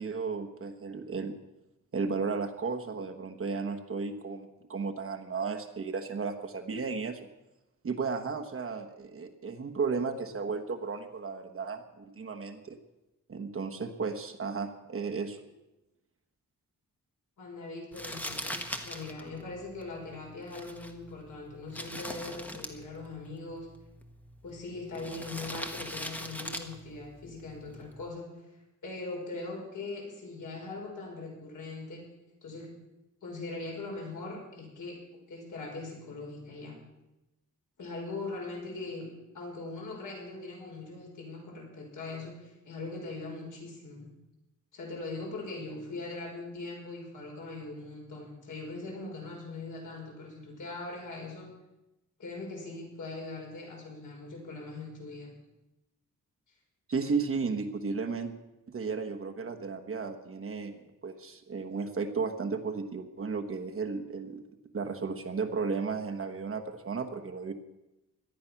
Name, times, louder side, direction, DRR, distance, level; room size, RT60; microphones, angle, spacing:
voice 1, 0.0-1.3 1.9-7.3 7.8-12.8 13.3-15.5 56.9-58.3 58.7-64.4 64.7-67.5, right 4 dB, 40° right, 4 dB, 1.2 m, -34 dB
voice 2, 17.4-23.7 24.4-28.3 28.8-32.0 32.4-32.7 33.2-36.8 37.8-39.1 39.3-44.1 44.7-51.5 52.2-55.3, left 3 dB, 65° left, -1 dB, 5.6 m, -41 dB
Crumpling crinkling, 17.9-28.1, equal, 5° left, 1.2 m, -42 dB
18.0 x 12.0 x 5.9 m, 0.97 s
wide cardioid pair, 170°, 33 cm